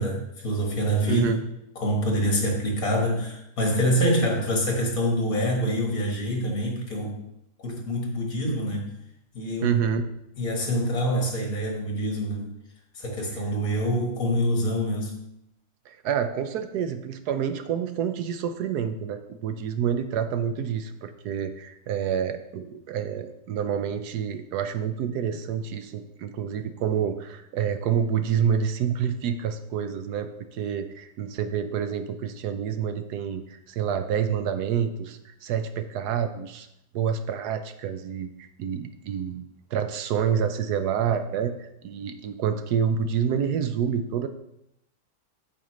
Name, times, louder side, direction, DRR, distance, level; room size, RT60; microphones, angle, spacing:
voice 1, 0.0-1.3 1.8-7.2 7.6-8.9 9.3-9.8 10.4-12.5 12.9-15.2, equal, 55° left, 0 dB, 1.9 m, -26 dB
voice 2, 1.1-1.4 9.6-10.1 15.9-36.7 36.9-39.4 39.7-44.3, right 8 dB, 75° right, 9 dB, 1.1 m, -28 dB
8.7 x 7.2 x 3.1 m, 0.82 s
omnidirectional pair, 1.8 m